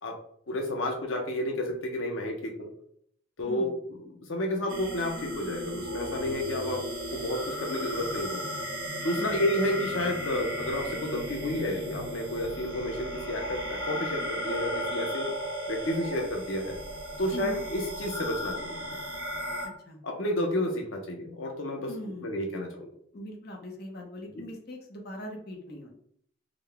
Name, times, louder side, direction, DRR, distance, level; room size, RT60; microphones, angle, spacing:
voice 1, 0.5-2.7 3.4-6.8 7.1-8.5 9.0-15.3 15.7-16.8 17.2-18.8 20.0-21.9 22.2-22.9, left 1 dB, 85° left, 2 dB, 0.7 m, -31 dB
sound 1, 4.7-19.7, equal, 85° right, 0.9 m, -35 dB
voice 2, 17.3-17.7 19.6-20.0 21.9-22.4 23.1-25.9, left 1 dB, 55° left, 1 dB, 0.8 m, -41 dB
3.8 x 2.2 x 3.3 m, 0.65 s
head